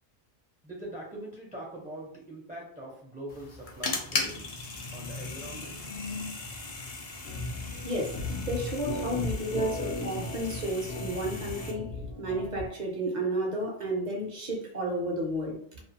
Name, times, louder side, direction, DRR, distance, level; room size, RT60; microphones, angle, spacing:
voice 1, 0.6-5.8, right 1 dB, 10° right, -4 dB, 0.5 m, -43 dB
sound 1, 3.3-11.7, left 3 dB, 50° left, 0.5 m, -38 dB
sound 2, 7.3-12.7, left 2 dB, 80° left, 0.9 m, -36 dB
voice 2, 7.7-8.2 8.5-15.8, right 1 dB, 45° right, 0 dB, 0.7 m, -32 dB
2.5 x 2.3 x 2.6 m, 0.67 s
omnidirectional pair, 1.1 m